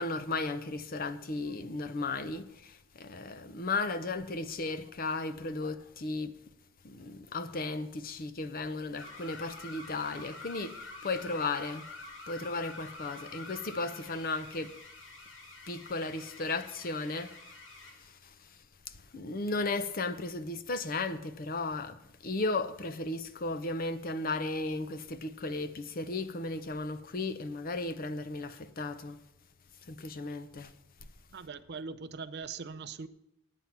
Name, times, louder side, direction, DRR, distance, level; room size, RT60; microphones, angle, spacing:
voice 1, 0.0-6.3 6.8-11.9 12.3-14.7 15.7-17.6 17.8-18.6 18.9-29.2 29.8-30.7, left 3 dB, 45° left, 0.6 m, -35 dB
sound 1, 9.0-18.0, left 3 dB, 65° left, 1.7 m, -47 dB
voice 2, 31.3-33.1, right 5 dB, 50° right, 0.5 m, -41 dB
9.1 x 8.8 x 5.9 m
head